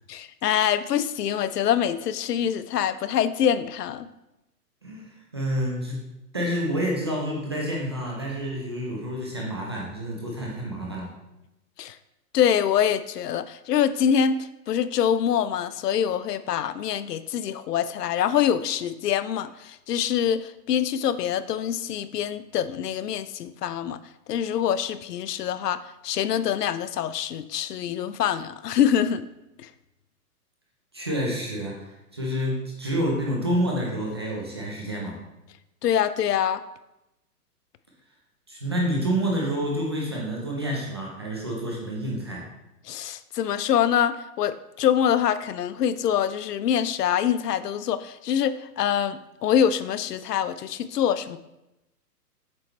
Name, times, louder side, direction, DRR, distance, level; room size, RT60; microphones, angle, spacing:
voice 1, 0.1-4.1 11.8-12.0 12.3-24.0 24.3-29.2 29.6-29.7 35.8-36.6 42.9-51.4, left 9 dB, 80° left, 14 dB, 0.6 m, -25 dB
voice 2, 4.8-6.0 6.3-11.1 30.9-35.2 38.5-42.4, equal, 20° right, -3 dB, 0.4 m, -28 dB
7.6 x 3.1 x 4.4 m, 0.93 s
hypercardioid pair, 150°, 47 cm